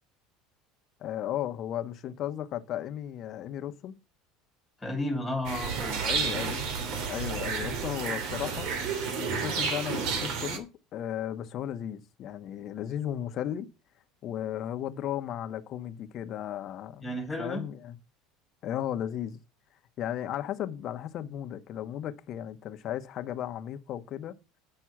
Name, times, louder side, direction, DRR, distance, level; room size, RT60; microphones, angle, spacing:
voice 1, 1.0-3.9 6.0-6.7 7.1-8.7 9.2-13.7 14.2-18.0 18.6-19.4 20.0-24.4, left 11 dB, 45° left, 1.1 m, -35 dB
voice 2, 4.8-6.4 17.0-17.7, left 1 dB, 5° left, 2.8 m, -33 dB
sound 1, 5.4-10.6, right 5 dB, 65° right, 3.0 m, -31 dB
9.8 x 6.2 x 5.9 m
supercardioid pair, 130°, 0 cm